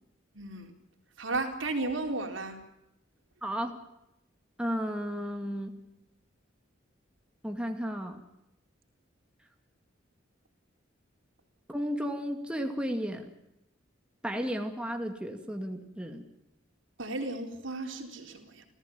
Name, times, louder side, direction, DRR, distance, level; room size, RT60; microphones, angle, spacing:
voice 1, 0.3-0.7 1.2-2.6 17.0-18.7, right 2 dB, 80° right, 4 dB, 4.1 m, -34 dB
voice 2, 3.4-3.7 4.6-5.7 7.4-8.2 11.7-13.3 14.2-16.2, equal, 5° right, 4 dB, 2.3 m, -33 dB
30.0 x 15.0 x 7.2 m, 0.86 s
head